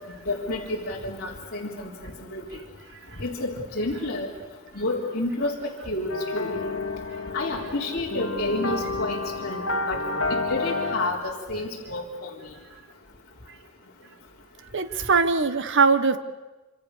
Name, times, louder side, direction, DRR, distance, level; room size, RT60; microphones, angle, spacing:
voice 1, 0.3-2.4 3.2-4.3 4.7-6.6 7.3-10.0 10.3-12.3, left 2 dB, 45° left, -5 dB, 3.7 m, -30 dB
sound 1, 6.1-11.1, left 3 dB, 65° left, 2.3 m, -30 dB
voice 2, 14.7-16.2, right 4 dB, 60° right, 12 dB, 1.4 m, -21 dB
26.5 x 26.0 x 6.8 m, 1.1 s
head